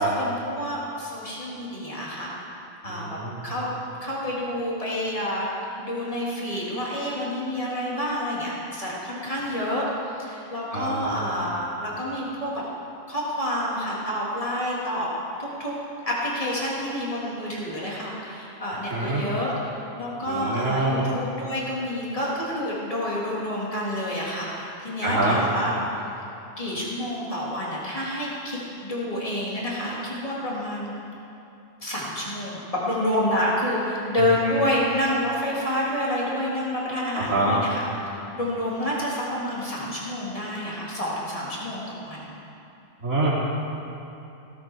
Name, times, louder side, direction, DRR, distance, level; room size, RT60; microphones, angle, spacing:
voice 1, 0.0-2.3 2.8-3.7 4.0-12.6 13.1-15.1 15.4-15.7 16.0-19.7 19.9-25.7 26.6-30.9 31.8-37.8 38.1-42.3, left 1 dB, 25° left, -6 dB, 3.2 m, -28 dB
voice 2, 2.9-3.4 10.7-11.3 18.9-19.2 20.3-21.0 25.0-25.4 37.1-37.6 43.0-43.3, right 2 dB, 90° right, -7 dB, 4.0 m, -25 dB
17.0 x 13.0 x 4.7 m, 2.8 s
omnidirectional pair, 1.3 m